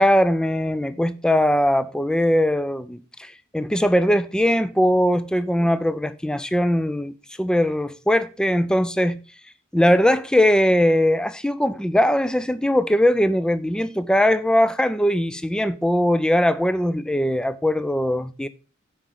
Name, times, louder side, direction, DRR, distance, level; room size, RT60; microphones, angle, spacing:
voice 1, 0.0-9.2 9.7-18.5, equal, 5° left, 0.3 m, -20 dB
7.7 x 5.1 x 5.4 m
head